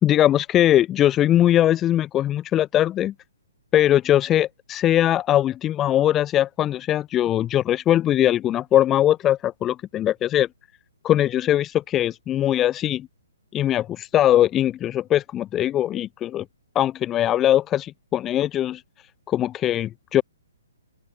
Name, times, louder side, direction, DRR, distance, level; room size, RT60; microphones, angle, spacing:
voice 1, 0.0-3.1 3.7-10.5 11.0-13.1 13.5-16.4 16.7-18.8 19.3-20.2, left 12 dB, 15° left, 0.9 m, -21 dB
open air
figure-of-eight pair, 125°, 0 cm